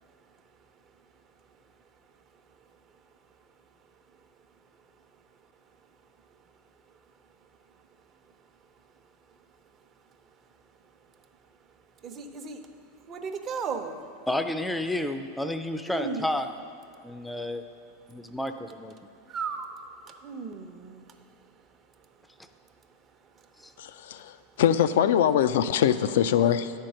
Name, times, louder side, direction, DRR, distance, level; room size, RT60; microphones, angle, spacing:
voice 1, 12.0-12.6 13.0-14.1 15.9-16.3 18.2-18.3 19.2-22.1 22.9-23.0 23.3-23.7, right 5 dB, 35° right, 6 dB, 0.8 m, -37 dB
voice 2, 14.3-16.5 17.0-17.6 18.1-18.9 23.6-23.7, left 1 dB, 5° left, 8 dB, 0.5 m, -31 dB
voice 3, 23.8-26.7, left 9 dB, 70° left, 12 dB, 0.4 m, -23 dB
10.0 x 4.5 x 6.4 m, 2.3 s
hypercardioid pair, 100°, 0 cm